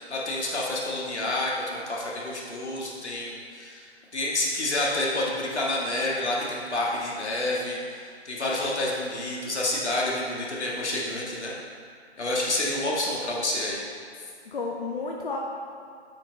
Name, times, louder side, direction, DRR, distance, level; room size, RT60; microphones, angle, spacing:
voice 1, 0.0-11.5 12.2-13.8, left 1 dB, 80° left, -4 dB, 1.7 m, -29 dB
voice 2, 14.2-15.4, left 3 dB, 50° left, -1 dB, 0.7 m, -32 dB
8.0 x 4.2 x 3.9 m, 2.2 s
figure-of-eight pair, 155°, 33 cm